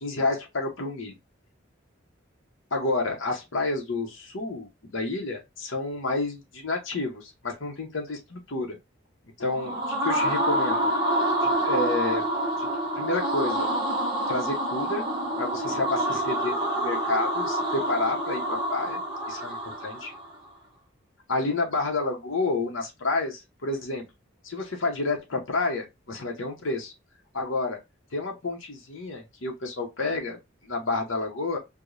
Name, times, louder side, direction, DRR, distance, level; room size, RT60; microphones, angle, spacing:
voice 1, 0.0-1.1 2.7-8.8 9.4-10.9 11.4-12.3 12.6-13.7 14.3-15.1 15.4-19.0 19.3-20.1 21.3-24.0 24.4-26.9 27.3-27.8 28.1-30.4 30.6-31.6, left 3 dB, 80° left, 0.9 m, -30 dB
sound 1, 9.4-20.3, right 1 dB, 25° right, 1.1 m, -27 dB
4.8 x 2.3 x 2.6 m
head